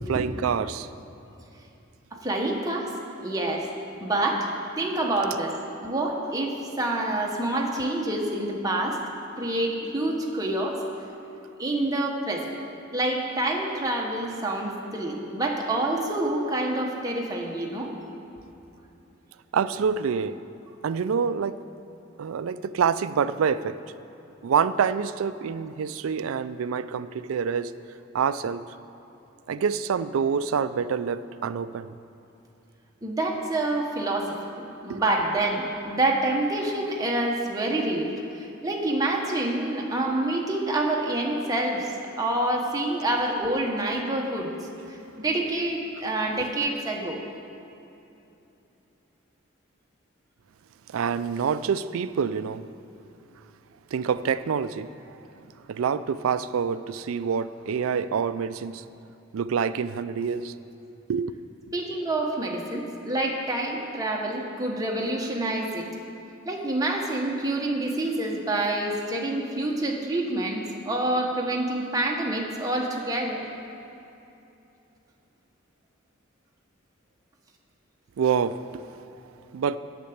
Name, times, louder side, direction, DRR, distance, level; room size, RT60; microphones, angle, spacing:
voice 1, 0.1-0.9 5.2-5.4 19.5-20.4 20.8-21.6 22.2-23.8 24.4-27.7 28.1-28.6 29.5-31.9 34.9-35.3 43.2-43.3 50.9-52.6 53.9-54.9 55.7-58.8 59.3-60.5 61.1-61.4 78.2-78.9 79.5-79.8, right 6 dB, 85° right, 14 dB, 0.4 m, -26 dB
voice 2, 2.1-2.9 3.2-3.7 4.0-5.5 5.8-9.0 9.4-10.8 11.6-12.5 12.9-17.9 33.0-41.9 42.2-44.5 45.2-47.2 61.7-65.9 66.4-73.4, right 1 dB, 15° right, -1 dB, 1.1 m, -27 dB
8.4 x 6.8 x 8.6 m, 2.8 s
head